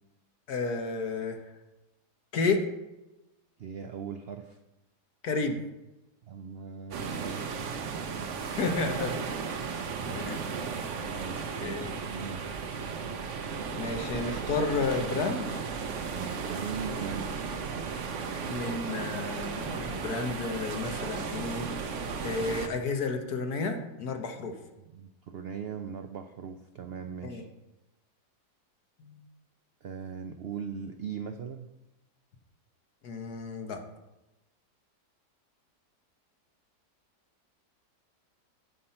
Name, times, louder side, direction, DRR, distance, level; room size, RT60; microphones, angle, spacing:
voice 1, 0.5-1.4 2.3-2.6 5.2-5.6 8.5-9.8 10.0-10.4 11.6-11.9 13.7-15.6 18.5-21.7 22.2-24.5 27.2-27.4 29.0-29.2 33.0-33.8, left 4 dB, 65° left, 4 dB, 1.6 m, -32 dB
voice 2, 3.6-4.6 6.3-7.7 8.1-8.5 9.9-10.2 11.2-12.5 16.1-17.4 24.8-27.5 29.8-31.7, right 6 dB, 80° right, 7 dB, 0.5 m, -40 dB
sound 1, 6.9-22.7, right 5 dB, 55° right, 1.0 m, -35 dB
15.5 x 5.7 x 4.3 m, 0.99 s
omnidirectional pair, 1.8 m